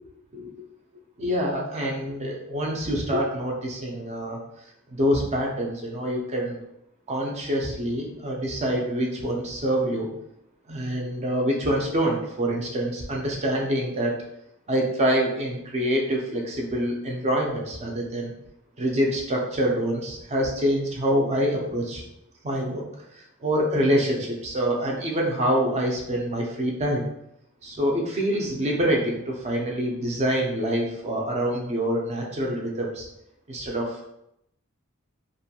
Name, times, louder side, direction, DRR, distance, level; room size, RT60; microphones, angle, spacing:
voice 1, 1.2-4.4 4.9-6.6 7.1-10.1 10.7-14.2 14.7-18.3 18.8-22.0 22.4-22.8 23.1-27.1 27.6-33.1 33.5-34.0, equal, 30° right, -1 dB, 0.4 m, -26 dB
2.5 x 2.2 x 2.7 m, 0.81 s
head